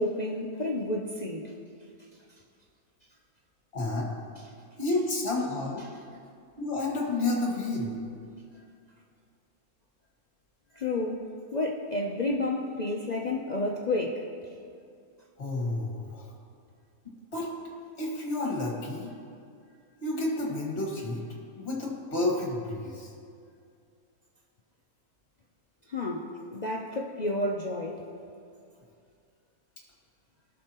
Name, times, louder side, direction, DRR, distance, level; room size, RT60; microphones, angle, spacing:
voice 1, 0.0-1.5 10.7-11.2 11.5-14.2 25.9-28.0, left 2 dB, 65° left, -1 dB, 0.4 m, -30 dB
voice 2, 3.7-4.1 4.8-5.9 6.6-8.0 15.4-16.3 17.0-17.5 18.0-19.1 20.0-21.2 21.6-23.1, left 2 dB, 40° left, -2 dB, 2.0 m, -30 dB
18.5 x 6.4 x 2.9 m, 2.4 s
omnidirectional pair, 1.6 m